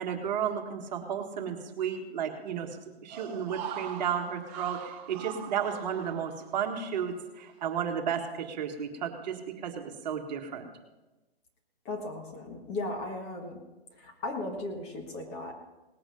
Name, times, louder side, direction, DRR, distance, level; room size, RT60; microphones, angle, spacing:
voice 1, 0.0-2.7 3.0-10.7, right 8 dB, 45° right, 4 dB, 1.8 m, -33 dB
sound 1, 3.1-6.8 7.1-7.2, right 9 dB, 20° right, 1.1 m, -42 dB
voice 2, 11.8-13.6 13.9-15.5, left 2 dB, 20° left, 3 dB, 1.5 m, -36 dB
19.0 x 8.7 x 5.3 m, 1.1 s
hypercardioid pair, 155°, 31 cm